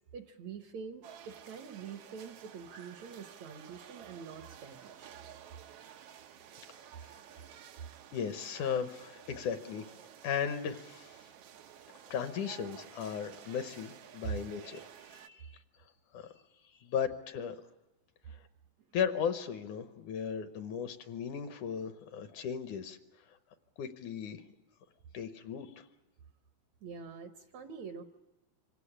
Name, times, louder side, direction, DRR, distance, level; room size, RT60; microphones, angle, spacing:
voice 1, 0.1-5.1 26.8-28.0, right 6 dB, 70° right, 7 dB, 1.8 m, -46 dB
sound 1, 1.0-15.3, right 9 dB, 85° right, 1.3 m, -53 dB
voice 2, 8.1-9.9 10.2-11.2 12.1-15.5 16.1-16.3 16.8-17.6 18.9-23.0 23.8-24.4 25.1-25.8, left 7 dB, 70° left, 9 dB, 2.1 m, -36 dB
26.0 x 17.0 x 9.9 m, 1.1 s
omnidirectional pair, 4.1 m